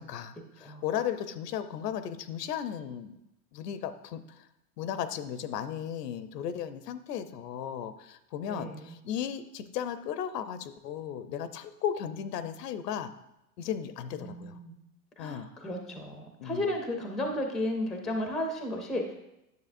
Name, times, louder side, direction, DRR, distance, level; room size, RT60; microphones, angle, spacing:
voice 1, 0.0-3.1 3.5-4.5 4.8-13.1 13.6-14.6 15.2-15.5 16.4-16.7, left 9 dB, 85° left, 12 dB, 0.7 m, -35 dB
voice 2, 8.5-8.9 14.2-14.7 15.2-19.1, left 1 dB, ahead, 3 dB, 0.4 m, -34 dB
9.5 x 6.6 x 2.5 m, 0.88 s
hypercardioid pair, 120°, 47 cm